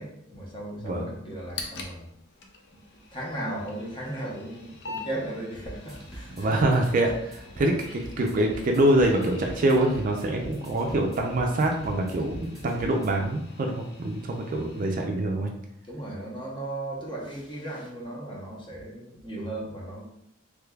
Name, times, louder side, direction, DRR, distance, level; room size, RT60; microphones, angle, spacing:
voice 1, 0.0-2.1 2.7-2.8 3.1-6.6 7.6-7.7 15.9-20.0, right 1 dB, 25° left, -3 dB, 0.8 m, -36 dB
sound 1, 1.3-15.1, left 3 dB, 55° left, 0.5 m, -45 dB
sound 2, 5.6-13.3, right 1 dB, ahead, 1.1 m, -44 dB
voice 2, 6.4-15.5, right 1 dB, 40° right, 1 dB, 0.4 m, -25 dB
3.5 x 3.2 x 2.3 m, 0.75 s
head